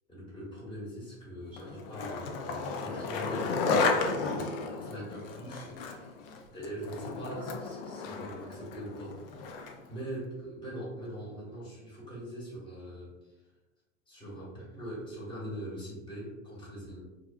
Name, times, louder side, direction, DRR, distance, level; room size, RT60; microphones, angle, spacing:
voice 1, 0.1-6.1 6.5-9.2 9.6-13.1 14.1-17.0, equal, 10° left, -6 dB, 1.2 m, -42 dB
Skateboard, 1.6-9.9, left 4 dB, 45° left, 0.4 m, -33 dB
2.6 x 2.2 x 2.4 m, 1.1 s
hypercardioid pair, 95°, 40 cm